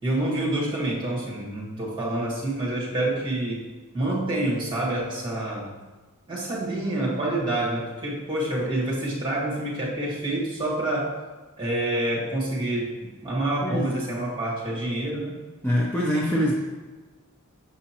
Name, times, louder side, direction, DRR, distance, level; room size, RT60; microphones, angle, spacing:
voice 1, 0.0-3.6 3.9-5.7 6.3-11.2 11.6-15.3, right 1 dB, 20° right, -5 dB, 1.6 m, -27 dB
voice 2, 13.6-13.9 15.6-16.5, equal, 10° left, -5 dB, 0.6 m, -24 dB
7.0 x 5.1 x 2.9 m, 1.3 s
head